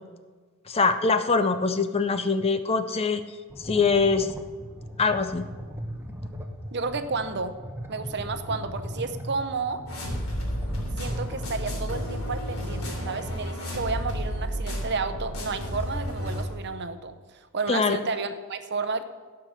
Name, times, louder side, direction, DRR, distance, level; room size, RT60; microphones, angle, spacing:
voice 1, 0.7-3.2 3.6-4.3 5.0-5.5 17.7-18.0, left 4 dB, 25° left, 9 dB, 0.5 m, -23 dB
sound 1, 3.5-13.5, equal, 10° right, 0.9 m, -39 dB
voice 2, 6.7-7.5 7.9-9.8 11.0-19.0, right 4 dB, 50° right, 9 dB, 0.8 m, -31 dB
sound 2, 9.9-16.4, equal, 70° left, 3.3 m, -32 dB
15.5 x 5.8 x 6.3 m, 1.4 s
head